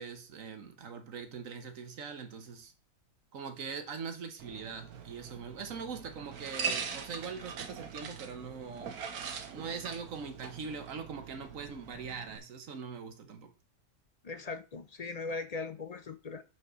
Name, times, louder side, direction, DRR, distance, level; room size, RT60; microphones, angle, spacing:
voice 1, 0.0-2.7 3.3-9.0 9.5-13.5, right 5 dB, 65° right, 1.5 m, -42 dB
sound 1, 4.4-12.4, right 6 dB, 85° right, 1.5 m, -42 dB
voice 2, 14.2-16.4, left 3 dB, 45° left, 0.5 m, -39 dB
5.8 x 4.6 x 6.2 m
omnidirectional pair, 1.6 m